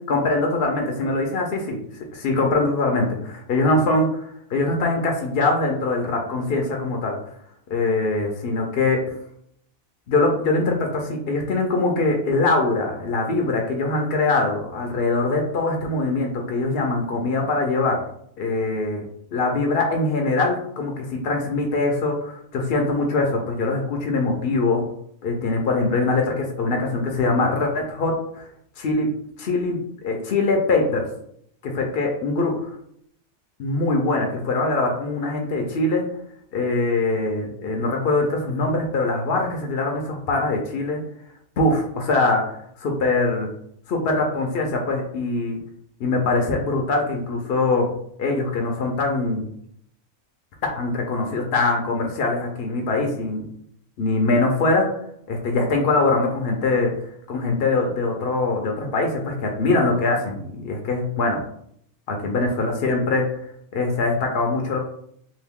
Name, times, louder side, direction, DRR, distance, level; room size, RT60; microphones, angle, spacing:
voice 1, 0.1-1.8 2.1-7.2 7.7-9.0 10.1-18.0 18.4-19.0 19.3-24.8 25.2-28.5 28.8-29.1 29.4-29.8 30.0-31.1 31.6-32.5 33.6-36.1 36.5-41.0 41.6-43.5 43.9-45.6 46.0-47.9 48.2-49.5 50.7-53.4 54.0-54.9 55.3-56.9 57.3-61.4 62.1-63.4 63.7-64.8, left 3 dB, 60° left, 2 dB, 0.7 m, -22 dB
2.8 x 2.6 x 3.5 m, 0.68 s
omnidirectional pair, 1.4 m